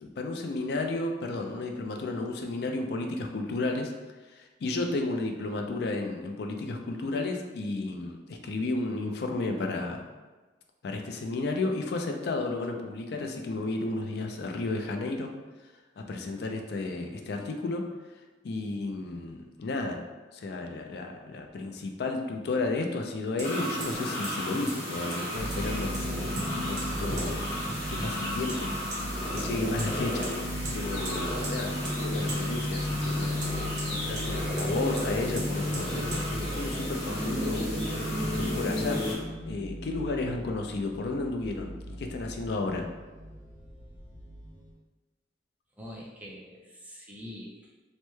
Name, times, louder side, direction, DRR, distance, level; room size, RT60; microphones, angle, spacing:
voice 1, 0.0-3.9 4.3-10.0 10.8-15.3 16.0-17.8 18.4-20.0 20.3-26.3 26.5-27.5 27.9-28.7 29.3-30.3 30.7-37.7 38.2-39.0 39.5-42.9, left 2 dB, 60° left, 3 dB, 0.4 m, -33 dB
Hammer, 21.5-21.6 23.4-23.5 23.8-24.0 24.2-24.4 24.7-24.8 25.1-25.7 25.9-26.5 26.8-26.9 27.2-27.3 28.5-28.6 28.9-29.0 29.4-29.9 30.2-30.3 30.6-30.8 31.0-31.6 31.8-32.0 32.3-32.4 33.4-34.3 34.6-34.7 35.0-35.1 35.4-35.5 35.7-35.9 36.1-36.2, right 3 dB, 80° right, 1.1 m, -39 dB
sound 1, 23.4-39.1, equal, 35° left, 0.9 m, -34 dB
sound 2, 25.4-44.7, left 1 dB, 80° left, 0.8 m, -36 dB
voice 2, 45.8-47.8, equal, 10° right, -4 dB, 0.5 m, -44 dB
3.2 x 2.1 x 3.1 m, 1.2 s
head